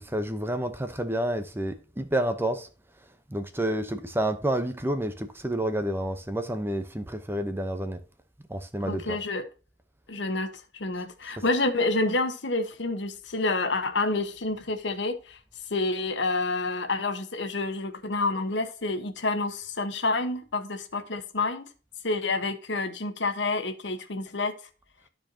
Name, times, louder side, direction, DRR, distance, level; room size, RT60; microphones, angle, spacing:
voice 1, 0.0-2.7 3.3-8.0 8.5-9.2, right 1 dB, 15° right, 0.8 m, -29 dB
voice 2, 8.8-9.5 10.1-15.4 15.7-21.7 22.0-24.5, left 2 dB, 70° left, 1.1 m, -28 dB
13.0 x 4.6 x 2.8 m
head